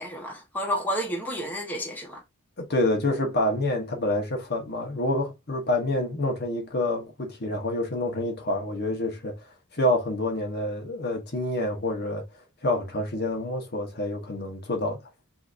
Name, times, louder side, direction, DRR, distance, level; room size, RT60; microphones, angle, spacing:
voice 1, 0.0-2.2, equal, 10° left, 1.1 m, -30 dB
voice 2, 2.6-9.4 9.7-12.2 12.6-15.0, left 1 dB, 50° left, 1.2 m, -27 dB
5.6 x 2.8 x 2.5 m
head